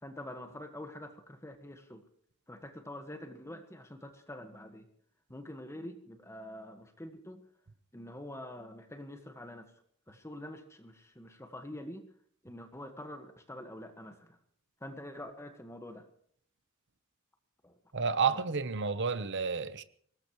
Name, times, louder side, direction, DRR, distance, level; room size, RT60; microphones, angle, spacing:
voice 1, 0.0-2.0 2.5-4.9 5.3-7.4 7.9-9.7 10.1-12.1 12.4-14.4 14.8-16.0 17.6-17.8 18.3-18.5, left 1 dB, 15° left, 1.6 m, -46 dB
voice 2, 17.9-19.8, right 5 dB, 55° right, 1.1 m, -30 dB
23.5 x 19.5 x 3.2 m
head